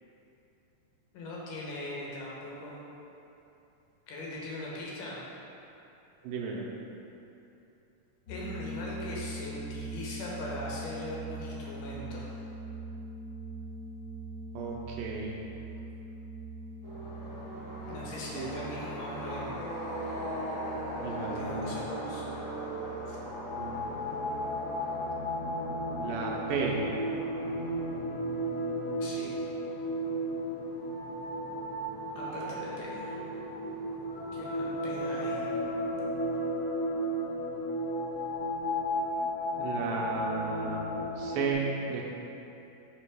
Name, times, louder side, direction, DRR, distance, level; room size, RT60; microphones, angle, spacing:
voice 1, 1.1-2.8 4.1-5.2 8.3-12.3 17.9-19.6 21.3-22.3 23.1-23.2 29.0-29.3 32.2-33.2 34.3-35.5, left 1 dB, 70° left, -5 dB, 2.5 m, -40 dB
voice 2, 6.2-6.7 14.5-15.4 18.3-18.5 21.0-21.8 23.6-23.8 26.0-26.8 39.6-40.9 41.2-42.1, right 4 dB, 85° right, -2 dB, 2.5 m, -33 dB
sound 1, 8.3-26.9, right 2 dB, 45° left, 1.5 m, -43 dB
sound 2, 16.8-35.6, equal, 45° right, 0.7 m, -42 dB
sound 3, 23.1-41.5, equal, 85° left, 2.6 m, -34 dB
6.2 x 5.2 x 4.9 m, 2.9 s
omnidirectional pair, 4.1 m